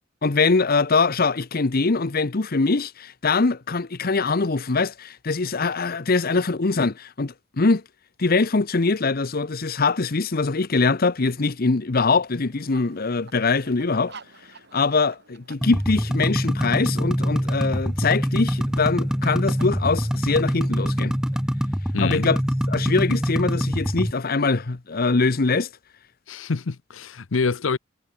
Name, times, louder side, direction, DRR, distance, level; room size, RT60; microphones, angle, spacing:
voice 1, 0.2-7.8 8.2-14.1 14.7-21.1 22.0-22.4 22.7-25.7, left 4 dB, 50° left, 0.8 m, -23 dB
sound 1, 12.3-21.5, right 4 dB, 60° right, 7.6 m, -51 dB
sound 2, 15.6-24.1, equal, 5° right, 1.2 m, -24 dB
voice 2, 21.9-22.3 26.3-27.8, left 4 dB, 85° left, 0.7 m, -26 dB
head